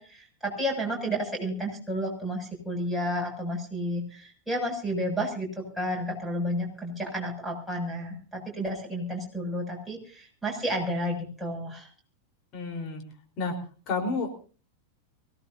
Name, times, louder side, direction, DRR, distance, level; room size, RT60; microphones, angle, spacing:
voice 1, 0.0-11.9, equal, ahead, 2 dB, 7.4 m, -31 dB
voice 2, 12.5-13.0 13.4-13.6 13.9-14.3, left 3 dB, 35° left, 2 dB, 4.4 m, -30 dB
24.5 x 18.0 x 2.8 m, 0.39 s
figure-of-eight pair, 90°, 0 cm